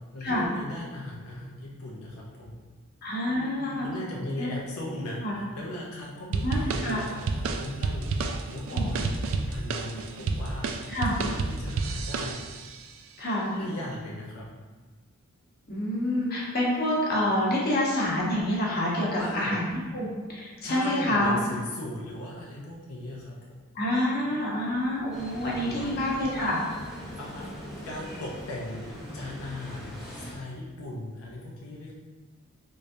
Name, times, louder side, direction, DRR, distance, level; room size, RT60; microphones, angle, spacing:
voice 1, 0.1-2.5 3.3-10.7 11.1-12.4 13.5-14.5 19.1-19.6 20.6-23.4 24.2-24.6 25.6-25.9 26.4-26.7 27.2-31.9, left 1 dB, 85° left, -3 dB, 0.6 m, -38 dB
voice 2, 3.0-3.9 4.3-4.5 5.2-5.3 6.4-7.0 8.7-8.9 10.9-11.2 13.2-13.5 15.7-21.3 23.7-26.5, left 1 dB, 45° left, -4 dB, 0.9 m, -27 dB
sound 1, 6.3-12.8, right 3 dB, 65° right, 0.3 m, -30 dB
sound 2, 25.1-30.3, equal, ahead, 0.7 m, -41 dB
3.8 x 3.2 x 2.6 m, 1.4 s
head